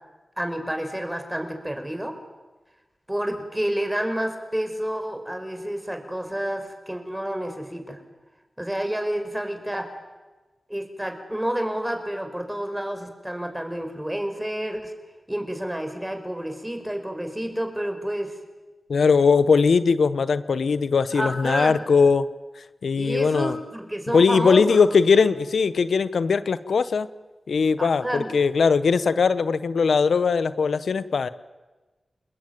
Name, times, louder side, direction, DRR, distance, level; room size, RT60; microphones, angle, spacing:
voice 1, 0.4-2.1 3.1-8.0 8.6-9.9 10.7-14.9 15.3-18.4 21.1-21.8 22.9-25.3 27.8-28.3, right 1 dB, 10° right, 6 dB, 4.8 m, -29 dB
voice 2, 18.9-22.2 22.8-23.6 24.1-27.1 27.5-31.3, left 5 dB, 85° left, 14 dB, 0.9 m, -20 dB
28.0 x 21.0 x 9.3 m, 1.2 s
wide cardioid pair, 75°, 0 cm